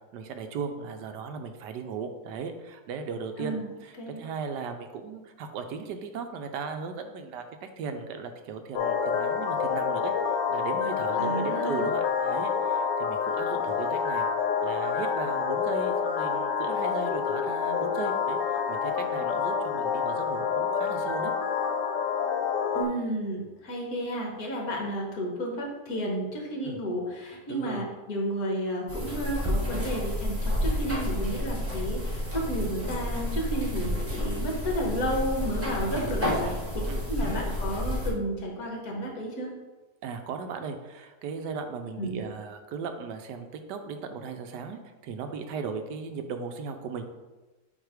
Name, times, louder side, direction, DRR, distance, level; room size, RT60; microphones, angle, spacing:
voice 1, 0.1-14.3 14.6-21.3 26.6-26.8 27.5-27.8 35.9-36.6 36.9-37.1 40.0-47.0, right 5 dB, 80° right, 7 dB, 1.3 m, -37 dB
sound 1, 8.7-22.8, left 6 dB, 85° left, 1.3 m, -28 dB
voice 2, 11.2-11.9 22.7-36.3 37.1-39.5 42.0-42.2, right 1 dB, 60° left, -1 dB, 1.6 m, -32 dB
sound 2, 28.9-38.1, left 1 dB, 10° right, 1.2 m, -30 dB
7.4 x 2.9 x 4.8 m, 1.2 s
omnidirectional pair, 1.8 m